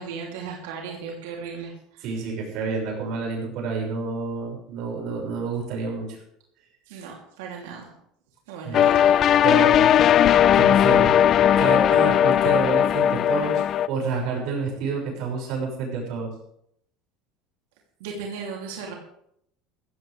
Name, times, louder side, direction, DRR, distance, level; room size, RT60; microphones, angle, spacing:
voice 1, 0.0-2.0 6.9-7.9 8.5-9.2 18.0-18.9, right 5 dB, 90° right, -1 dB, 3.1 m, -36 dB
voice 2, 2.0-6.2 8.6-8.9 9.4-9.9 10.2-11.1 11.5-16.3, right 4 dB, 60° right, -1 dB, 6.4 m, -29 dB
sound 1, 8.7-13.9, left 10 dB, 40° left, 0.5 m, -18 dB
15.5 x 15.0 x 3.5 m, 0.72 s
supercardioid pair, 125°, 0 cm